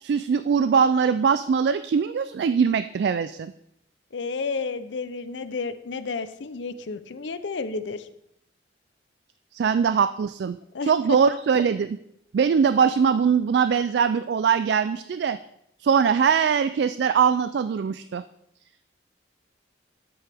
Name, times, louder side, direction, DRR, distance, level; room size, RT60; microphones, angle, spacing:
voice 1, 0.0-3.5 9.5-10.6 10.8-12.0 12.3-15.4 15.8-18.2, right 6 dB, 65° right, 12 dB, 0.3 m, -22 dB
voice 2, 4.1-8.1 10.7-11.2, left 4 dB, 75° left, 12 dB, 0.6 m, -31 dB
10.5 x 8.2 x 3.5 m, 0.76 s
head